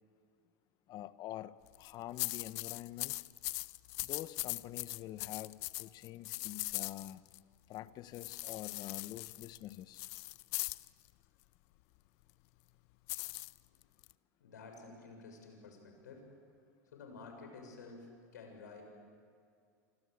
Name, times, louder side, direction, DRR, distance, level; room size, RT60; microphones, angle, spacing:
voice 1, 0.9-3.1 4.0-7.2 7.7-10.0, left 14 dB, 50° left, 15 dB, 1.1 m, -46 dB
sound 1, 1.7-1.9 2.2-7.4 8.1-10.9 13.1-14.1, left 24 dB, 65° left, 0.7 m, -40 dB
voice 2, 14.4-16.2 16.9-18.8, left 4 dB, 85° left, 3 dB, 6.9 m, -51 dB
28.0 x 25.0 x 8.3 m, 2.4 s
hypercardioid pair, 95°, 9 cm